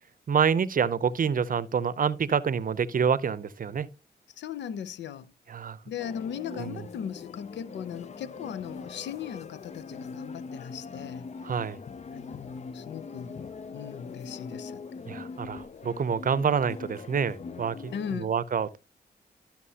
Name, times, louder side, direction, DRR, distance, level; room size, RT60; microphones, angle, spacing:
voice 1, 0.3-3.9 5.5-5.8 6.5-6.8 11.4-11.8 15.1-18.8, right 6 dB, 50° right, 0.6 m, -27 dB
voice 2, 4.4-5.3 5.9-11.3 12.1-13.4 13.7-14.8 17.9-18.3, left 8 dB, 85° left, 0.6 m, -38 dB
sound 1, 6.0-18.2, left 5 dB, 40° left, 0.4 m, -42 dB
13.0 x 5.8 x 2.8 m
cardioid pair, 50°, 18 cm